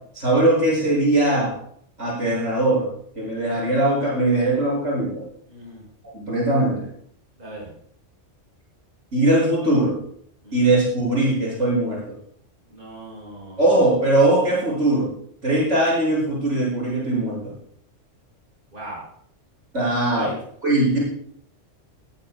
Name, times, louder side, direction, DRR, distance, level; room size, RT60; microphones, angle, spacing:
voice 1, 0.1-1.5 2.0-2.9 3.2-5.2 6.1-6.9 9.1-10.0 10.5-12.1 13.6-15.1 15.4-17.5 19.7-20.3 20.6-21.0, right 1 dB, 70° right, -5 dB, 7.4 m, -20 dB
voice 2, 5.5-5.8 7.4-7.7 10.4-10.7 12.7-13.6 18.7-19.0 20.1-20.4, right 2 dB, 40° right, -5 dB, 6.6 m, -37 dB
17.5 x 16.5 x 2.4 m, 0.65 s
omnidirectional pair, 1.3 m